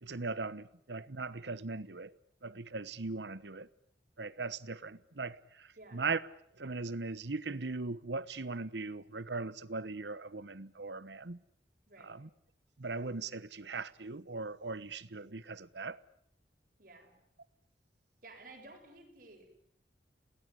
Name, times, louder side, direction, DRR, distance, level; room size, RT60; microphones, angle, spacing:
voice 1, 0.0-2.1 2.4-3.7 4.2-6.2 6.6-11.4 12.0-12.3 12.8-16.0, right 3 dB, 75° right, 1.1 m, -39 dB
voice 2, 11.9-12.2 16.8-17.1 18.2-19.5, right 2 dB, 50° right, 7.5 m, -54 dB
29.5 x 19.0 x 9.8 m
head